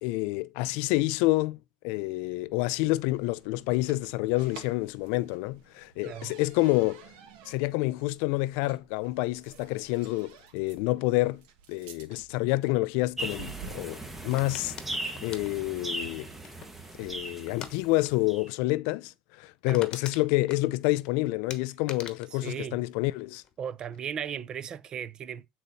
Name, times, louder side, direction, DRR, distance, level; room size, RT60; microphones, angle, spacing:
voice 1, 0.0-1.6 1.8-7.0 7.5-11.4 11.7-14.7 15.2-16.3 17.0-23.4, left 20 dB, 75° left, 0.4 m, -28 dB
sound 1, 2.5-17.6, right 8 dB, 80° right, 1.6 m, -52 dB
sound 2, 13.2-18.5, right 1 dB, 10° right, 1.2 m, -38 dB
sound 3, 14.3-16.9 17.5-17.7 18.0-18.3 18.5-18.6 19.1-19.2 19.4-21.1 21.5-23.5 23.8-24.3, left 8 dB, 40° left, 1.2 m, -44 dB
voice 2, 22.3-22.8 23.6-25.5, right 8 dB, 35° right, 0.5 m, -36 dB
8.7 x 4.2 x 4.1 m
cardioid pair, 140°, 2 cm